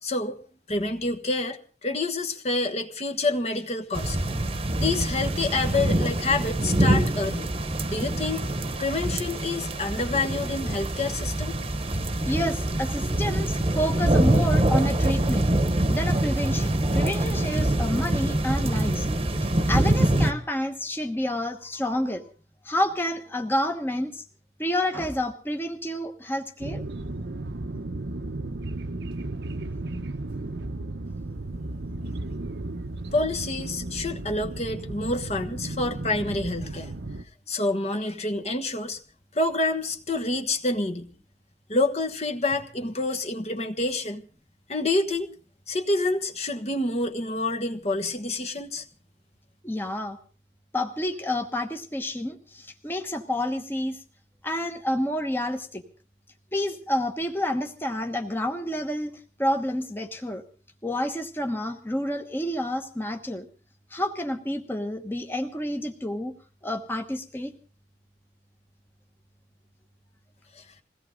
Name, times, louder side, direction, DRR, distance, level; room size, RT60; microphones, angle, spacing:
voice 1, 0.0-0.4 0.7-4.4 4.8-7.5 7.9-8.5 8.8-11.6 33.1-36.9 37.5-39.0 39.3-41.1 41.7-44.2 44.7-45.3 45.7-48.8 70.5-70.6, left 2 dB, 35° left, 5 dB, 1.3 m, -28 dB
sound 1, 3.9-20.3, right 1 dB, 30° right, 1.2 m, -25 dB
voice 2, 12.3-15.5 15.9-19.1 19.4-22.3 22.6-24.2 24.6-26.8 49.6-50.2 50.7-54.0 54.4-55.8 56.5-59.1 59.4-60.4 60.8-63.5 63.9-66.3 66.6-67.5, left 1 dB, 10° left, 5 dB, 1.2 m, -29 dB
sound 2, 26.6-37.2, right 2 dB, 75° right, 1.0 m, -34 dB
22.0 x 17.0 x 3.9 m, 0.39 s
head